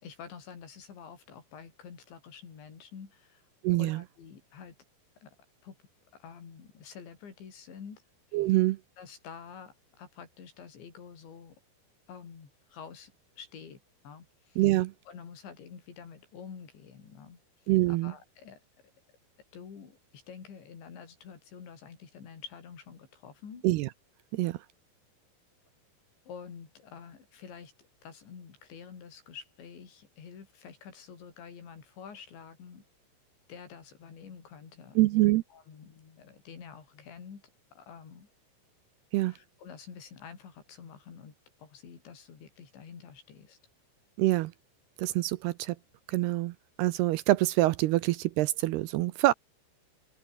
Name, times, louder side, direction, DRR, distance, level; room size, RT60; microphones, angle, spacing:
voice 1, 0.0-3.4 3.7-4.7 5.2-5.4 5.6-5.8 6.1-8.0 8.3-8.4 9.0-11.6 12.1-13.1 13.4-14.6 15.1-17.4 17.9-18.6 19.5-23.7 26.3-27.7 28.0-32.8 33.5-35.0 35.5-37.4 37.7-38.3 39.3-41.4 41.6-43.6, left 6 dB, 70° left, 6.9 m, -48 dB
voice 2, 3.6-4.0 8.3-8.8 14.6-14.9 17.7-18.1 23.6-23.9 24.3-24.6 35.0-35.4 39.1-39.3 44.2-44.5 45.0-45.8 46.1-49.3, right 18 dB, 80° right, 2.4 m, -25 dB
omnidirectional pair, 5.4 m